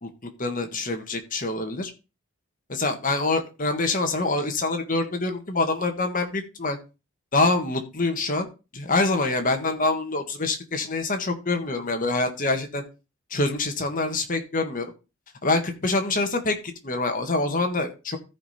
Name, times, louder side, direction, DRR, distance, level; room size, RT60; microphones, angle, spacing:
voice 1, 0.0-1.9 2.7-6.8 7.3-8.5 8.7-12.8 13.3-14.9 15.4-18.2, left 2 dB, 40° left, 5 dB, 1.6 m, -25 dB
14.0 x 5.2 x 4.3 m, 0.30 s
head